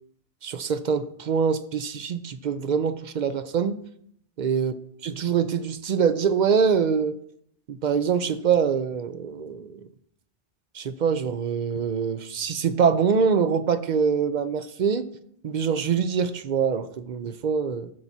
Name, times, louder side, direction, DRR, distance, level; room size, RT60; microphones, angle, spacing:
voice 1, 0.4-3.8 4.4-4.7 5.0-7.2 7.7-9.8 10.7-15.0 15.4-17.9, right 6 dB, 55° right, 12 dB, 0.5 m, -24 dB
15.0 x 7.1 x 2.7 m, 0.68 s
omnidirectional pair, 1.2 m